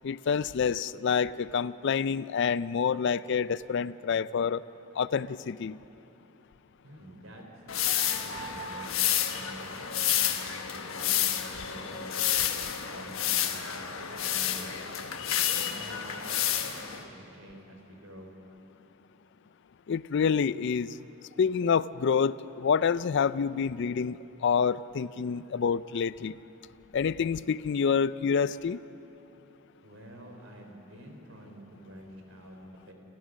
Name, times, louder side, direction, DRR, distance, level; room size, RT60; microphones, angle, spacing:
voice 1, 0.0-4.6 4.9-5.8 19.9-21.0 21.4-26.4 26.9-28.8, left 6 dB, 60° left, 17 dB, 0.4 m, -27 dB
voice 2, 6.8-7.4 7.8-8.9 9.3-10.4 10.7-12.1 12.8-14.8 15.2-18.3 29.8-32.9, equal, 80° right, 2 dB, 3.9 m, -48 dB
sound 1, 7.7-17.0, left 10 dB, 85° left, 1.3 m, -30 dB
29.0 x 15.0 x 6.4 m, 2.9 s
head